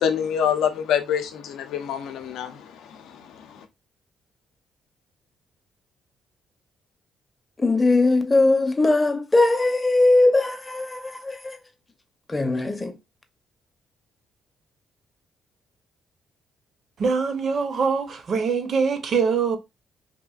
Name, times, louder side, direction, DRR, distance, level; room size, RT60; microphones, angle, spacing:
voice 1, 0.0-2.5, left 8 dB, 85° left, 0.5 m, -25 dB
voice 2, 7.6-11.6 12.3-12.9, left 2 dB, 20° left, 0.5 m, -20 dB
voice 3, 17.0-19.6, right 5 dB, 55° right, 0.6 m, -23 dB
2.9 x 2.4 x 2.3 m
cardioid pair, 90°, 0 cm